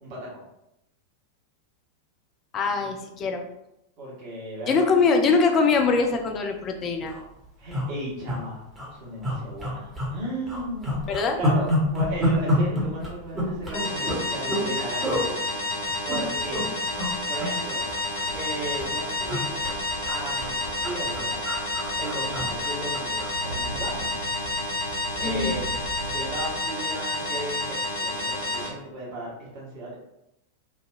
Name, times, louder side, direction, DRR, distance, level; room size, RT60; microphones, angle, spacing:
voice 1, 0.0-0.4 2.8-2.9 4.0-4.8 7.6-8.6 8.9-11.0 11.4-15.3 16.0-16.7 17.3-17.8 18.3-19.5 20.1-21.4 22.0-24.1 25.1-25.7 26.1-30.0, right 1 dB, 45° right, -5 dB, 1.1 m, -35 dB
voice 2, 2.5-3.4 4.7-7.1 11.1-11.4 25.2-25.6, left 4 dB, 30° left, 4 dB, 0.4 m, -22 dB
sound 1, 6.2-6.4 6.7-6.8 7.0-7.2 7.7-8.4 8.7-8.9 9.2-10.2 10.5-14.7 15.0-15.3 15.9-16.6 16.9-17.1 17.4-18.5 18.8-23.4 23.7-23.9, left 1 dB, 10° right, 1.0 m, -28 dB
sound 2, 13.7-28.7, left 2 dB, 55° left, 0.8 m, -30 dB
sound 3, 18.2-26.5, right 1 dB, 85° right, 0.3 m, -42 dB
3.2 x 2.2 x 2.4 m, 0.86 s
figure-of-eight pair, 90°, 0 cm